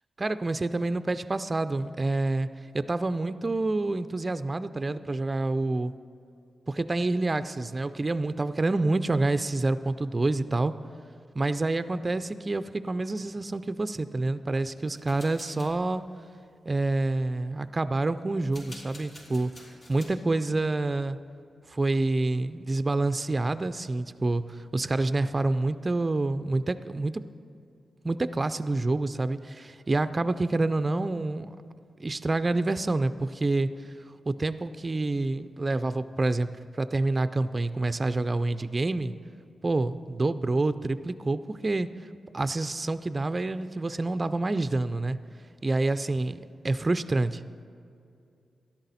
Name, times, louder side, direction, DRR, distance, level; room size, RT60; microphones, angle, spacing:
voice 1, 0.2-2.5 2.7-5.9 6.7-10.7 11.3-16.0 16.7-21.2 21.7-27.2 28.0-31.5 32.0-33.7 34.3-39.2 39.6-41.9 42.3-45.2 45.6-47.4, right 2 dB, 30° right, 12 dB, 0.3 m, -27 dB
sound 1, 15.0-15.7 18.4-20.1, left 1 dB, 60° left, 3.3 m, -48 dB
13.0 x 11.0 x 4.1 m, 2.5 s
cardioid pair, 80°, 0 cm